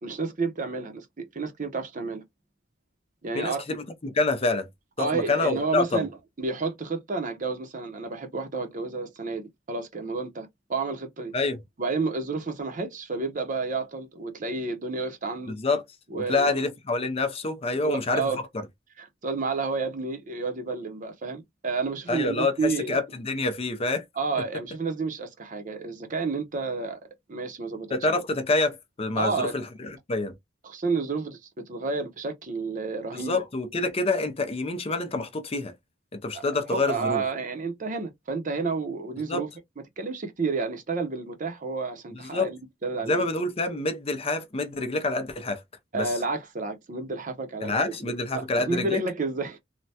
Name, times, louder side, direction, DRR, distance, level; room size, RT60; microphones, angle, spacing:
voice 1, 0.0-2.2 3.2-3.6 5.0-6.1 6.4-11.3 11.8-15.6 16.1-16.6 17.8-18.4 19.0-23.0 24.2-27.0 27.3-27.9 29.2-29.5 30.6-31.4 31.7-33.4 36.3-36.4 36.7-39.5 40.0-43.3 45.9-47.7 48.1-49.6, right 4 dB, 45° right, 0.7 m, -30 dB
voice 2, 3.3-4.7 5.0-6.1 11.3-11.6 15.5-15.8 16.1-18.3 22.1-24.0 24.4-24.5 27.9-30.3 33.1-35.7 36.1-37.2 39.3-39.5 42.1-42.5 43.0-45.6 45.9-46.1 47.6-49.0, left 2 dB, 30° left, 0.5 m, -27 dB
3.3 x 2.1 x 2.7 m
head